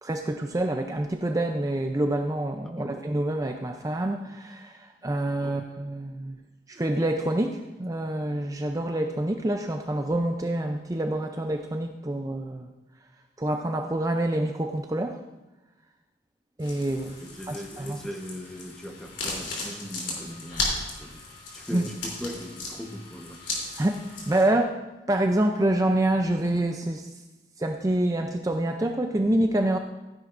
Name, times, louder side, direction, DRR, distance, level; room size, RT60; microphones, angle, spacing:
voice 1, 0.0-6.4 6.7-12.7 13.4-15.2 16.6-17.2 17.5-18.0 21.7-21.8 23.8-24.8 25.1-27.1 27.6-29.8, right 1 dB, 20° right, 4 dB, 0.4 m, -27 dB
sound 1, 16.6-24.4, left 2 dB, 80° left, 3.3 m, -36 dB
voice 2, 17.2-21.2 21.5-23.4, equal, 5° left, 2 dB, 1.1 m, -39 dB
15.0 x 10.5 x 2.5 m, 1.1 s
head